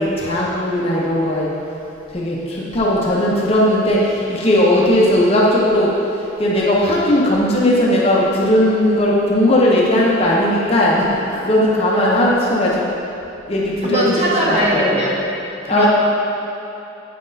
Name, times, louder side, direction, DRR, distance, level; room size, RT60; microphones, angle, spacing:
voice 1, 0.0-1.5 2.1-5.9 6.4-11.1 11.3-12.9 13.5-14.0 14.4-14.6 14.9-15.0 15.7-15.9, left 1 dB, 30° left, -4 dB, 0.6 m, -17 dB
voice 2, 13.8-15.2 15.7-15.9, equal, 30° right, -6 dB, 1.1 m, -19 dB
8.3 x 5.8 x 2.6 m, 2.8 s
head